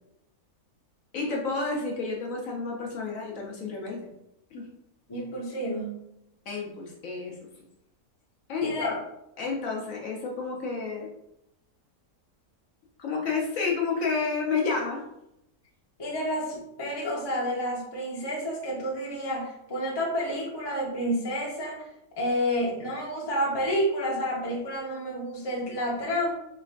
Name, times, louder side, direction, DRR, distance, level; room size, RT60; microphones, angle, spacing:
voice 1, 1.1-4.1 4.5-4.7 6.5-7.3 8.5-9.0 9.4-11.1 13.0-15.0, left 4 dB, 65° left, -2 dB, 1.2 m, -30 dB
voice 2, 5.1-6.0 8.6-8.9 16.0-21.9 22.2-26.3, equal, 20° left, -3 dB, 0.8 m, -30 dB
4.9 x 3.3 x 2.4 m, 0.82 s
omnidirectional pair, 1.6 m